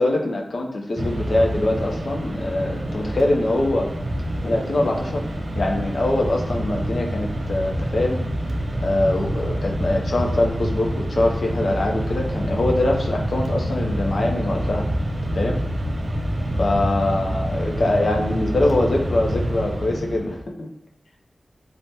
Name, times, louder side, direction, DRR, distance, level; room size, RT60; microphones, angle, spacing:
voice 1, 0.0-3.9 4.4-5.2 5.5-8.2 8.8-14.9 15.3-15.6 16.6-20.7, left 2 dB, 65° left, 0 dB, 0.4 m, -23 dB
Mechanisms, 1.0-20.4, equal, 50° right, 0.4 m, -26 dB
3.3 x 2.0 x 2.7 m, 0.79 s
wide cardioid pair, 95°, 0 cm